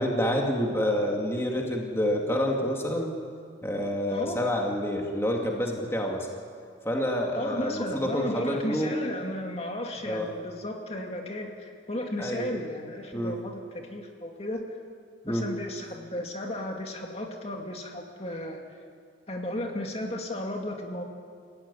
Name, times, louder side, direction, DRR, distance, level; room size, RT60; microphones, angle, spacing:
voice 1, 0.0-3.1 3.6-6.3 6.8-9.0 10.0-10.3 12.2-12.5 13.1-13.4 15.2-15.5, equal, 15° left, 0 dB, 2.3 m, -28 dB
voice 2, 4.1-4.4 7.4-14.6 15.3-18.6 19.3-21.0, left 1 dB, 35° left, 2 dB, 2.5 m, -34 dB
29.0 x 16.5 x 9.9 m, 2.2 s
head